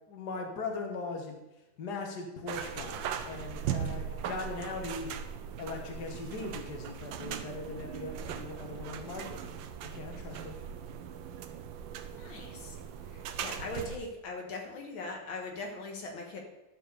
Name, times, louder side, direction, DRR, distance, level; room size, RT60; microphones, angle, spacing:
voice 1, 0.1-1.4 1.8-5.1 5.6-10.6, left 3 dB, 55° left, 3 dB, 1.9 m, -40 dB
sound 1, 2.5-14.0, right 8 dB, 75° right, 1.4 m, -39 dB
voice 2, 12.1-12.8 13.1-16.4, left 2 dB, 80° left, 2 dB, 2.1 m, -40 dB
11.5 x 4.5 x 6.7 m, 0.97 s
omnidirectional pair, 2.2 m